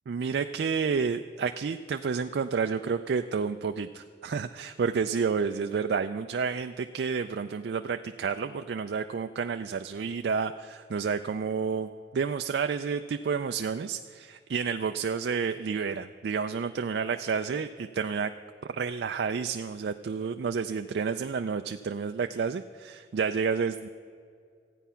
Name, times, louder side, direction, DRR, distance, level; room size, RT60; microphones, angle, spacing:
voice 1, 0.1-18.3 18.8-23.9, right 5 dB, 65° right, 8 dB, 0.3 m, -30 dB
14.0 x 9.2 x 5.6 m, 2.3 s
head